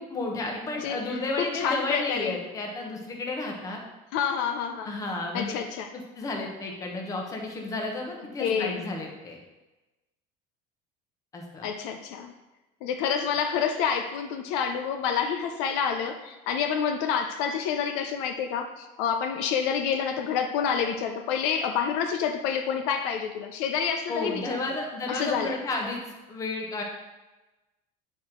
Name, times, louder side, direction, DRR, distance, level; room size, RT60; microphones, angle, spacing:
voice 1, 0.0-3.8 4.8-5.6 5.9-9.4 11.3-11.7 24.1-26.0 26.3-26.8, left 2 dB, 20° left, 1 dB, 0.9 m, -32 dB
voice 2, 0.8-2.4 4.1-4.9 5.3-5.9 8.4-8.8 11.6-12.3 12.8-24.6 25.1-25.6, left 7 dB, 65° left, 6 dB, 0.6 m, -28 dB
9.2 x 4.5 x 3.8 m, 1.1 s
cardioid pair, 180°, 18 cm